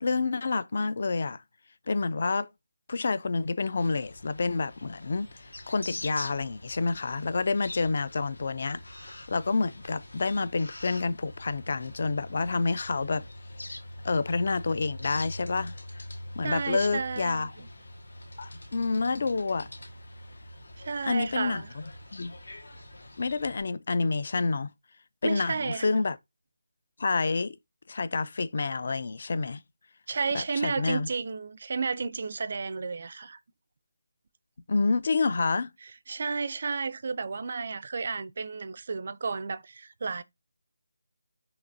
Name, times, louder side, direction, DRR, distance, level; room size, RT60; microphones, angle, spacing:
voice 1, 0.0-1.4 1.9-2.5 2.9-5.3 5.7-8.8 9.3-13.2 14.0-15.7 16.3-17.5 18.4-19.7 21.0-21.6 22.1-22.3 23.2-24.7 25.2-26.2 27.0-27.5 27.9-29.6 30.3-31.1 34.7-35.7, left 4 dB, 40° left, 0.4 m, -28 dB
sound 1, 3.8-23.6, left 1 dB, 85° left, 1.6 m, -44 dB
voice 2, 16.4-17.7 20.8-21.7 25.2-25.9 30.1-33.4 36.1-40.2, right 4 dB, 40° right, 0.4 m, -32 dB
5.7 x 2.9 x 2.6 m
figure-of-eight pair, 175°, 0 cm